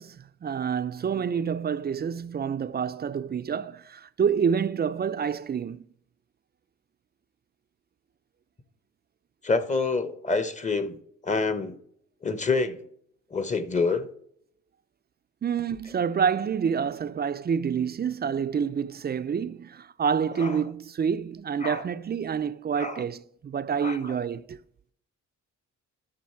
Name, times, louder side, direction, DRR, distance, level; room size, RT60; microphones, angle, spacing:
voice 1, 0.0-5.9 15.4-24.6, right 7 dB, 30° right, 0.5 m, -28 dB
voice 2, 9.4-11.0 11.2-11.7 12.2-12.8 13.3-14.1 20.4-20.6 21.6-21.8 22.8-23.0 23.8-24.2, left 4 dB, 25° left, 1.0 m, -27 dB
11.5 x 6.2 x 4.5 m
cardioid pair, 90°, 30 cm